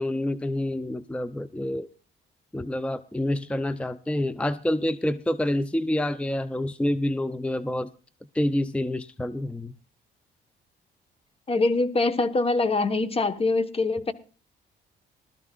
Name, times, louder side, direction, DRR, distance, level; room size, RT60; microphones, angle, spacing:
voice 1, 0.0-1.9 2.5-7.9 8.3-9.7, left 1 dB, 5° left, 0.6 m, -27 dB
voice 2, 11.5-14.1, left 3 dB, 30° left, 1.3 m, -24 dB
20.0 x 13.0 x 2.5 m
cardioid pair, 90°, 20 cm